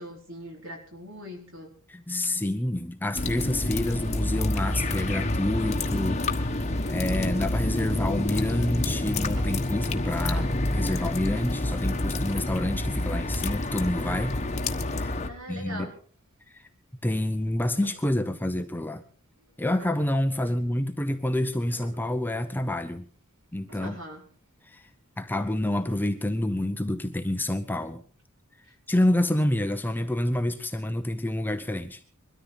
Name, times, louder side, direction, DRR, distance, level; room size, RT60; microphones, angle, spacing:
voice 1, 0.0-1.7 15.3-15.9 23.7-24.3, equal, 60° right, 2 dB, 4.5 m, -41 dB
voice 2, 1.9-6.2 6.9-14.4 14.9-15.1 15.5-15.9 16.5-16.6 17.0-19.0 19.6-23.0 23.5-24.0 24.6-24.9 25.2-28.0 28.9-32.0, left 1 dB, 10° left, 8 dB, 0.7 m, -28 dB
sound 1, 3.1-15.3, left 2 dB, 30° left, 1.2 m, -28 dB
sound 2, 8.3-12.9 13.7-14.7 15.0-15.2 15.6-16.9 17.3-20.2 20.6-21.1 21.4-23.4 23.7-24.5 24.8-24.9 25.1-25.4 25.7-25.8, equal, 80° right, 3.2 m, -51 dB
22.0 x 13.5 x 4.0 m, 0.41 s
head